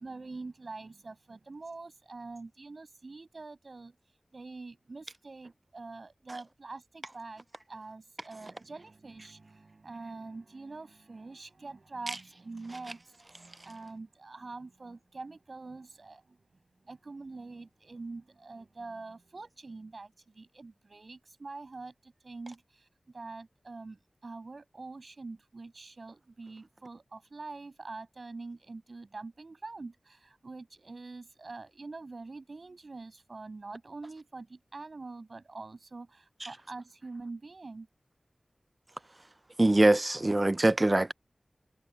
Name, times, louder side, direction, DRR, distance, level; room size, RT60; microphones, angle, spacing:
voice 1, 0.0-16.4 16.8-37.9, right 3 dB, 65° right, 7.8 m, -45 dB
voice 2, 39.6-41.1, right 2 dB, 30° right, 0.5 m, -23 dB
wide cardioid pair, 55°, 0 cm